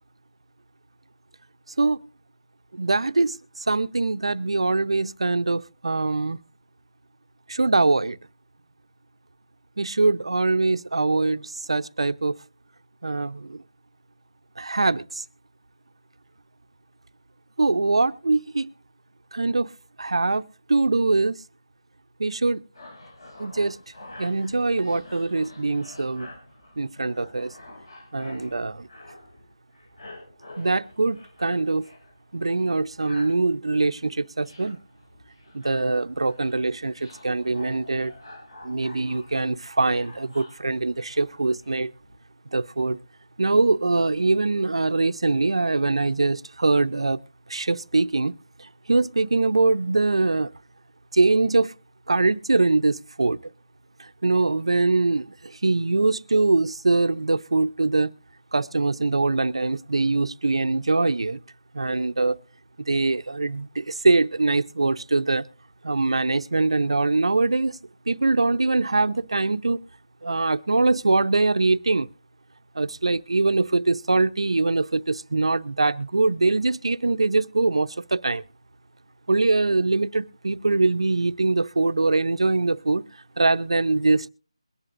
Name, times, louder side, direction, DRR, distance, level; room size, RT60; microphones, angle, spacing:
voice 1, 2.7-6.4 7.5-8.2 9.8-12.4 13.0-13.6 14.6-15.2 17.6-18.7 19.3-19.7 20.0-20.4 20.7-21.4 22.2-22.6 23.4-23.8 24.2-26.3 26.8-27.5 28.1-28.9 30.6-31.9 32.3-34.8 35.5-38.1 38.6-41.9 42.5-43.0 43.4-47.2 47.5-50.5 51.1-51.7 52.1-53.4 54.0-58.1 58.5-61.4 61.7-62.4 62.9-65.5 65.8-67.8 68.1-69.8 70.2-72.1 72.8-78.4 79.3-83.0 83.4-84.3, right 3 dB, 70° right, 0.6 m, -23 dB
sound 1, 22.7-29.5 29.7-32.1 32.4-33.4 33.9-34.1 34.4-41.8 42.0-42.2, left 1 dB, 50° left, 5.9 m, -47 dB
22.0 x 11.0 x 2.5 m
figure-of-eight pair, 175°, 3 cm